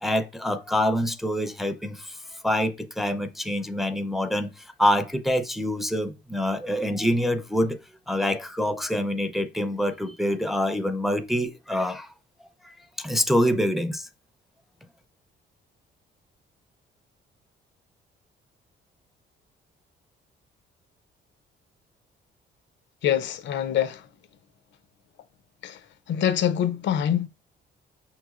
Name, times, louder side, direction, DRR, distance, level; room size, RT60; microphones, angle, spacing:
voice 1, 0.0-7.8 8.1-12.1 12.6-14.1, equal, ahead, 0.4 m, -26 dB
voice 2, 23.0-24.1 25.6-25.8 26.1-27.3, left 10 dB, 70° left, 0.5 m, -25 dB
5.7 x 3.0 x 2.3 m
cardioid pair, 90°, 20 cm